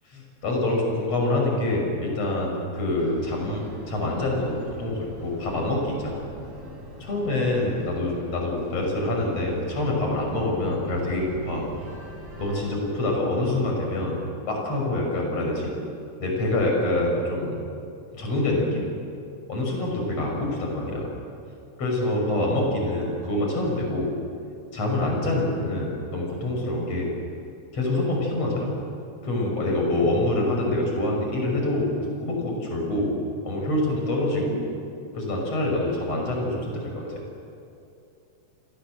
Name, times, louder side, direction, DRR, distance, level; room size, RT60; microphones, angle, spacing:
voice 1, 0.1-6.3 7.0-11.6 12.4-14.2 14.5-15.7 16.2-17.6 18.1-18.9 19.5-21.1 21.8-24.1 24.7-27.1 27.7-28.7 29.2-33.1 33.4-34.6 35.1-37.1, left 1 dB, 35° left, 0 dB, 6.8 m, -26 dB
sound 1, 3.0-12.6, equal, 50° right, 7.1 m, -42 dB
30.0 x 21.0 x 7.8 m, 2.6 s
omnidirectional pair, 5.4 m